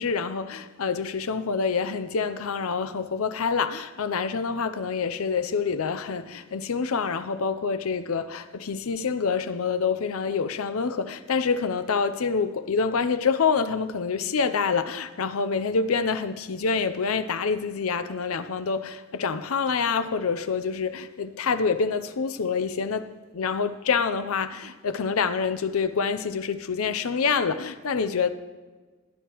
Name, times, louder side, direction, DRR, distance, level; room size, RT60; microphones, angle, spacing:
voice 1, 0.0-28.3, left 5 dB, 80° left, 0.6 m, -27 dB
16.5 x 10.0 x 3.0 m
head